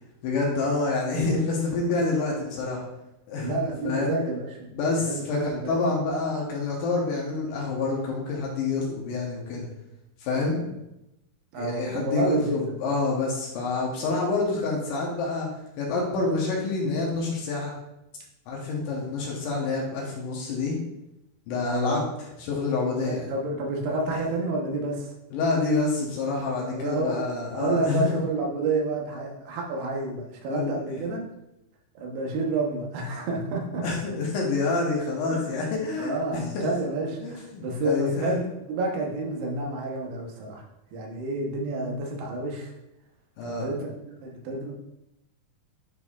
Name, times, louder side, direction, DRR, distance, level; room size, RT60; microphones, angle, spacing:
voice 1, 0.2-2.8 3.3-4.1 4.7-9.7 10.2-10.7 11.6-15.5 15.8-17.7 18.5-20.8 21.5-22.0 22.4-23.3 24.1-24.2 25.3-28.2 30.5-30.8 33.8-36.7 37.2-38.4 43.4-43.8, left 3 dB, 70° left, -2 dB, 2.3 m, -27 dB
voice 2, 3.4-4.7 5.1-5.9 11.5-12.6 21.6-22.0 23.1-25.1 26.7-27.2 27.5-31.2 32.0-33.8 35.3-35.5 36.0-40.6 40.9-42.7 43.4-44.7, right 2 dB, 90° right, 0 dB, 3.1 m, -29 dB
9.7 x 4.5 x 2.4 m, 0.89 s
omnidirectional pair, 4.5 m